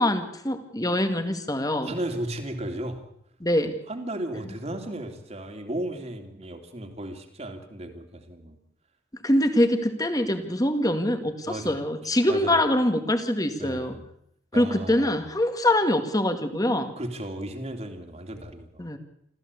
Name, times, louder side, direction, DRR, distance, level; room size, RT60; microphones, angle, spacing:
voice 1, 0.0-1.9 3.4-3.8 9.2-14.0 14.5-16.9 18.8-19.0, left 1 dB, 20° left, 8 dB, 2.1 m, -24 dB
voice 2, 1.8-3.0 3.9-8.6 11.5-11.8 12.3-12.6 13.6-14.0 14.5-15.2 17.0-18.8, right 1 dB, 35° right, 6 dB, 2.9 m, -35 dB
26.5 x 14.5 x 8.4 m, 0.75 s
head